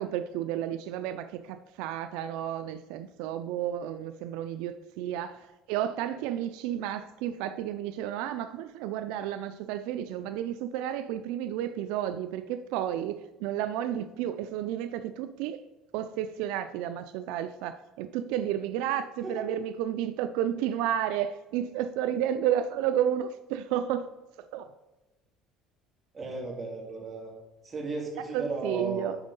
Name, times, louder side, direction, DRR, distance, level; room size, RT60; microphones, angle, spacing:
voice 1, 0.0-15.6 15.9-24.1 24.5-24.7 28.3-29.2, right 10 dB, 80° right, 10 dB, 0.4 m, -32 dB
voice 2, 26.1-27.3 27.6-29.2, right 3 dB, 25° right, -1 dB, 2.5 m, -35 dB
10.5 x 4.4 x 5.4 m, 1.1 s
cardioid pair, 130°, 0 cm